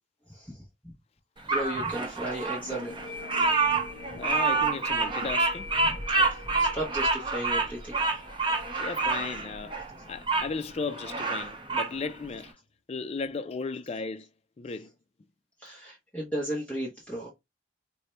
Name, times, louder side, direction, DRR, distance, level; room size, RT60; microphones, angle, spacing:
voice 1, 0.3-0.6 1.5-3.1 3.7-3.8 4.1-4.2 5.8-6.0 6.3-8.0 8.7-8.9 15.6-17.3, right 1 dB, 5° left, 0.8 m, -35 dB
Bird vocalization bird call bird song, 1.5-10.5 10.9-11.9, right 3 dB, 25° right, 0.6 m, -27 dB
sound 1, 2.6-10.0, left 3 dB, 70° left, 0.9 m, -45 dB
voice 2, 4.2-5.7 8.5-9.8 10.1-12.6 12.9-14.3 14.6-14.9, left 4 dB, 30° left, 0.3 m, -35 dB
4.2 x 2.1 x 3.1 m
head